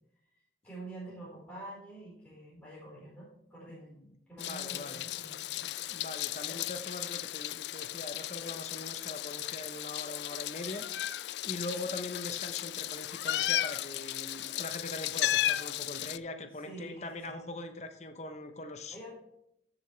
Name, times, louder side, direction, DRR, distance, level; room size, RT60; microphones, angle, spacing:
voice 1, 0.3-3.9 4.3-5.8 6.5-6.6 8.4-8.5 16.5-17.4 18.9-19.1, right 2 dB, 10° left, -7 dB, 4.6 m, -47 dB
voice 2, 3.7-5.0 5.9-10.9 11.4-19.1, left 2 dB, 40° left, 7 dB, 1.0 m, -42 dB
Meow, 4.4-16.2, left 13 dB, 75° left, 0.3 m, -35 dB
14.5 x 7.0 x 3.4 m, 0.77 s
head